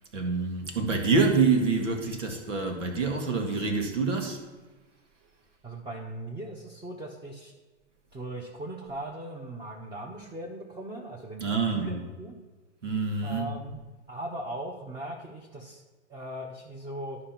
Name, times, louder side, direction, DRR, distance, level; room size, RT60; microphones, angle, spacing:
voice 1, 0.1-4.4 11.4-12.0 12.8-13.5, right 4 dB, 90° right, 2.1 m, -26 dB
voice 2, 5.6-7.5 8.1-12.4 13.2-13.8 14.1-15.8 16.1-17.2, right 1 dB, 10° right, 1.0 m, -39 dB
11.5 x 5.1 x 5.8 m
hypercardioid pair, 120°, 36 cm